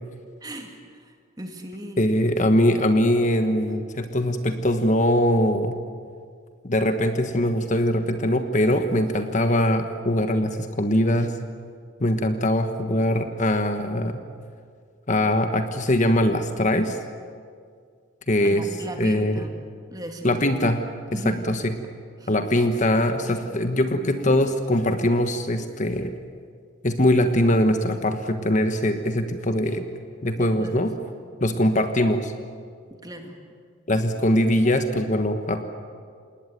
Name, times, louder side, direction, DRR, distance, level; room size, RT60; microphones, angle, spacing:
voice 1, 0.4-2.0 18.4-19.5 19.9-20.5 21.1-21.4 22.2-22.3 30.4-30.8 33.0-33.4, equal, 20° right, 4 dB, 2.4 m, -36 dB
voice 2, 2.0-5.8 6.6-11.4 12.0-14.2 15.1-17.0 18.3-18.7 19.0-19.4 20.2-20.8 21.1-21.6 22.3-26.1 26.8-29.9 30.2-30.9 31.4-32.3 33.9-35.6, left 1 dB, 35° left, 7 dB, 1.3 m, -22 dB
28.0 x 20.0 x 9.3 m, 2.1 s
head